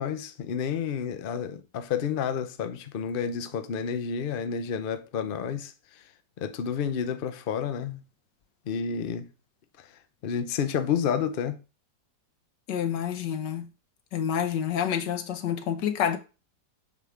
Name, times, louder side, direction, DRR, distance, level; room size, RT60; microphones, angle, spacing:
voice 1, 0.0-5.7 6.4-8.0 8.7-9.3 10.2-11.6, left 7 dB, 65° left, 0.5 m, -30 dB
voice 2, 12.7-13.7 14.1-16.2, left 8 dB, 85° left, 1.5 m, -28 dB
7.2 x 3.5 x 4.9 m
omnidirectional pair, 1.8 m